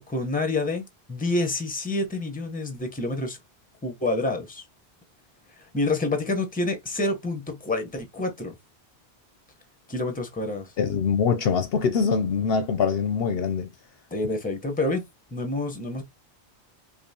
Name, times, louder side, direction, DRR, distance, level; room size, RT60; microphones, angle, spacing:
voice 1, 0.0-3.4 3.8-4.6 5.7-8.6 9.9-10.7 14.1-15.0 15.3-16.0, left 2 dB, 10° left, 0.8 m, -28 dB
voice 2, 10.8-13.7, left 6 dB, 65° left, 0.7 m, -23 dB
5.2 x 2.4 x 2.8 m
omnidirectional pair, 1.1 m